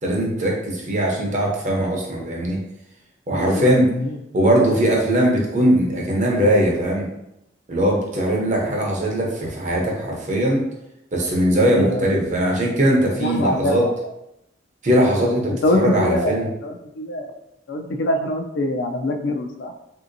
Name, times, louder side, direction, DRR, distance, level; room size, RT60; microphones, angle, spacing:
voice 1, 0.0-2.6 3.3-3.9 4.3-7.1 7.7-10.6 11.1-13.9 14.8-16.5, right 1 dB, 40° right, -1 dB, 0.7 m, -20 dB
voice 2, 3.4-4.2 11.6-12.2 13.2-13.9 15.2-17.3 17.7-19.7, left 1 dB, 65° left, 4 dB, 0.4 m, -24 dB
3.4 x 2.7 x 2.5 m, 0.86 s
head